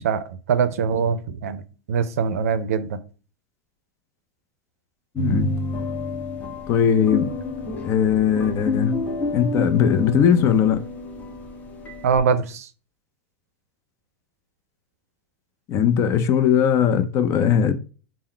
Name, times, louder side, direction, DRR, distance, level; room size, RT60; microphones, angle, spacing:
voice 1, 0.0-1.6 1.9-3.0 12.0-12.7, right 6 dB, 80° right, 0.4 m, -23 dB
voice 2, 5.2-5.5 6.7-7.3 7.8-8.9 9.3-10.8 15.7-17.8, left 8 dB, 40° left, 0.5 m, -19 dB
sound 1, 5.2-12.2, left 3 dB, 20° left, 0.8 m, -29 dB
3.7 x 2.0 x 4.2 m
hypercardioid pair, 105°, 8 cm